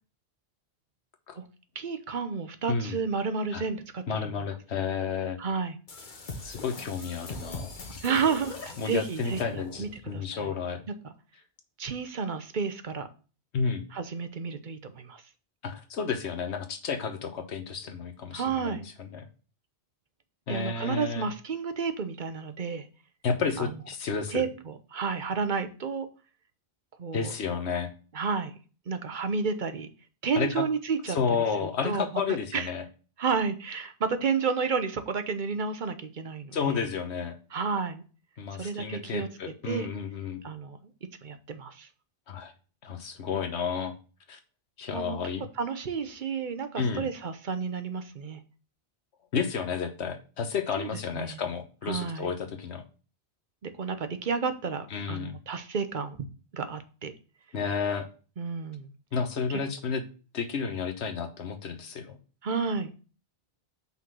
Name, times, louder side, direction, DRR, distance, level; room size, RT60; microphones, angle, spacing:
voice 1, 1.7-4.0 5.4-5.8 8.0-10.4 11.8-13.1 13.9-15.2 18.3-18.9 20.5-22.9 23.6-23.7 24.3-26.1 27.0-27.3 28.1-28.5 28.9-29.9 30.2-31.2 31.6-32.1 32.5-32.7 33.2-36.7 37.5-38.0 38.6-39.3 39.7-39.9 40.4-40.8 41.2-41.9 44.9-45.2 45.6-48.4 50.8-50.9 51.1-51.4 51.9-52.3 53.6-56.2 56.5-57.1 58.4-58.9 62.4-62.9, right 5 dB, 50° right, 9 dB, 0.9 m, -31 dB
voice 2, 4.1-5.4 6.4-7.7 8.8-10.9 13.5-13.8 15.6-19.3 20.5-21.3 23.2-24.5 27.1-27.9 30.3-30.6 31.1-32.9 36.5-37.4 38.4-40.4 42.3-42.5 42.8-43.9 44.3-44.4 44.8-45.5 46.8-47.1 49.3-52.8 54.9-55.4 57.5-58.1 59.1-60.0 60.3-62.2, left 6 dB, 80° left, 7 dB, 1.3 m, -31 dB
Rewindy with beat, 5.9-10.0, left 3 dB, 50° left, 1.1 m, -41 dB
5.5 x 4.0 x 6.1 m, 0.36 s
omnidirectional pair, 1.1 m